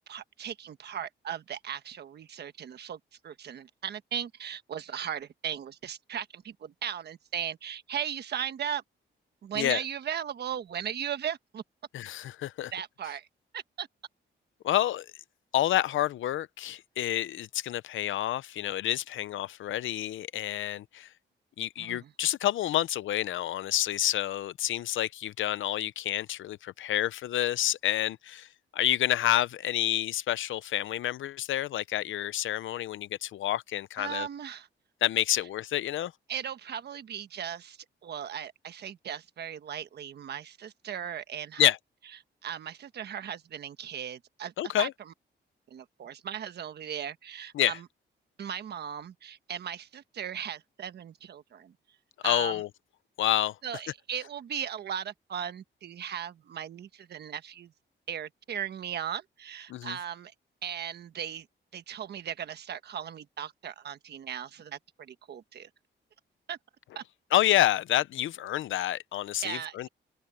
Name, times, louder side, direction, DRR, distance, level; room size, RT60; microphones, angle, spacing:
voice 1, 0.0-8.8 9.4-11.6 12.7-13.3 13.5-13.9 21.8-22.1 34.0-34.7 36.3-41.7 42.4-45.1 45.7-47.9 48.4-51.7 52.2-52.6 53.6-57.7 58.1-60.3 60.6-61.5 61.7-65.7 66.5-66.6 66.9-67.0 69.4-69.9, right 9 dB, 55° right, 1.3 m, -37 dB
voice 2, 11.9-12.7 14.6-15.1 15.5-21.1 21.6-34.3 35.0-36.1 41.6-41.8 44.6-44.9 47.5-47.8 52.2-52.7 53.2-53.6 59.7-60.0 67.3-69.9, left 13 dB, 80° left, 0.7 m, -28 dB
wide cardioid pair, 165°, 20 cm